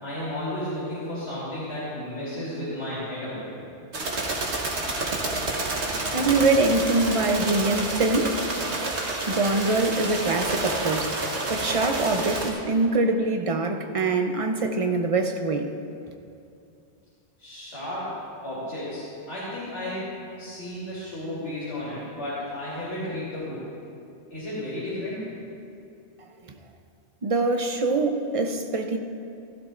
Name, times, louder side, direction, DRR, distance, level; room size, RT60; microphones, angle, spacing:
voice 1, 0.0-3.5 17.4-18.1 18.4-20.1 20.4-23.6 24.3-25.2, left 1 dB, 90° left, -11 dB, 3.6 m, -33 dB
sound 1, 3.9-12.5, right 2 dB, 80° right, 1.7 m, -29 dB
voice 2, 6.1-8.4 9.3-15.7 27.2-29.0, right 3 dB, 35° right, 5 dB, 0.7 m, -24 dB
16.5 x 15.0 x 2.5 m, 2.6 s
omnidirectional pair, 1.2 m